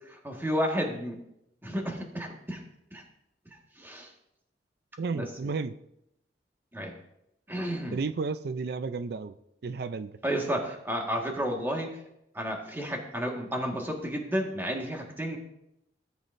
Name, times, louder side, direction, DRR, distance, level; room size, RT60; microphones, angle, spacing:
voice 1, 0.2-1.2 1.6-2.6 2.9-3.0 3.8-4.1 5.1-5.5 6.7-6.9 7.5-8.0 10.2-11.9 12.3-15.4, equal, 15° right, 1 dB, 1.7 m, -31 dB
voice 2, 5.0-5.8 7.9-9.3 9.6-10.2, right 4 dB, 65° right, 12 dB, 0.4 m, -32 dB
17.0 x 8.2 x 2.6 m, 0.80 s
head